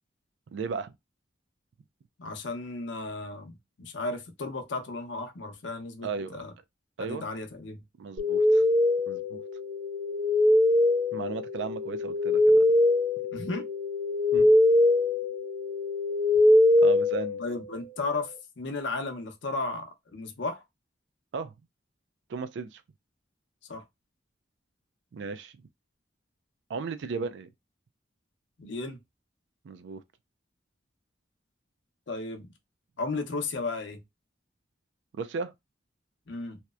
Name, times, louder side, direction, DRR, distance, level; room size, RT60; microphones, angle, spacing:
voice 1, 0.5-0.9 6.0-6.4 7.0-7.3 8.0-8.7 9.1-9.4 11.1-12.4 14.3-14.5 16.8-17.4 21.3-21.5 22.3-22.8 25.1-25.5 26.7-27.5 29.6-30.0 35.1-35.5, right 4 dB, 75° right, 0.4 m, -35 dB
voice 2, 2.2-6.5 7.0-7.8 13.3-13.7 17.4-20.6 23.7-23.8 28.6-29.0 32.1-32.5 33.0-34.0 36.3-36.6, left 3 dB, 80° left, 0.6 m, -34 dB
sound 1, 8.2-17.9, left 1 dB, 50° right, 0.8 m, -23 dB
2.8 x 2.0 x 2.2 m
head